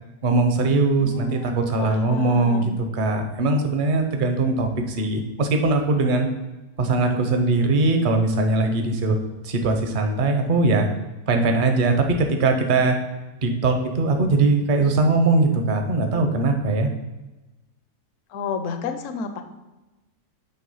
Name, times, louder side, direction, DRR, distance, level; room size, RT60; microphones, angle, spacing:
voice 1, 0.2-6.3 6.8-9.2 9.4-10.9 11.3-13.0 13.4-16.9, right 3 dB, 45° right, 5 dB, 0.7 m, -21 dB
voice 2, 1.0-2.8 18.3-19.4, left 5 dB, 60° left, 8 dB, 0.9 m, -32 dB
8.4 x 3.5 x 5.5 m, 1.1 s
omnidirectional pair, 1.8 m